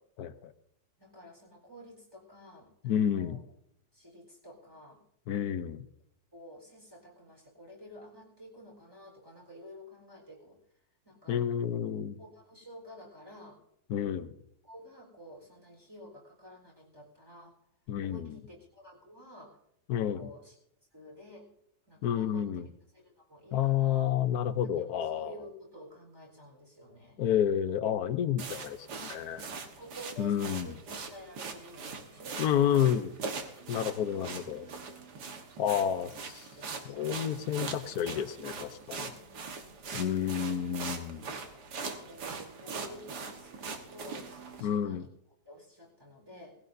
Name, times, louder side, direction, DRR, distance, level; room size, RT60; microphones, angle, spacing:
voice 1, 0.2-0.5 2.8-3.4 5.3-5.8 11.3-12.2 13.9-14.3 17.9-18.4 19.9-20.3 22.0-22.7 23.5-25.3 27.2-29.4 30.2-30.7 32.4-33.1 33.7-34.6 35.6-36.5 36.8-39.1 39.9-41.3 44.6-45.1, left 9 dB, 65° left, 11 dB, 1.2 m, -30 dB
voice 2, 1.0-3.4 3.9-5.0 6.3-10.6 11.0-11.4 12.2-13.6 14.6-17.6 18.0-19.6 20.0-20.5 20.9-21.5 21.9-22.7 22.9-24.1 24.5-27.2 29.4-32.8 33.6-34.0 34.6-35.2 35.7-35.9 36.6-37.2 39.2-39.8 41.7-45.1 45.5-46.6, equal, 15° right, -1 dB, 4.0 m, -51 dB
sound 1, 28.4-44.6, right 4 dB, 70° right, 1.9 m, -42 dB
19.0 x 16.0 x 2.7 m, 0.77 s
omnidirectional pair, 1.8 m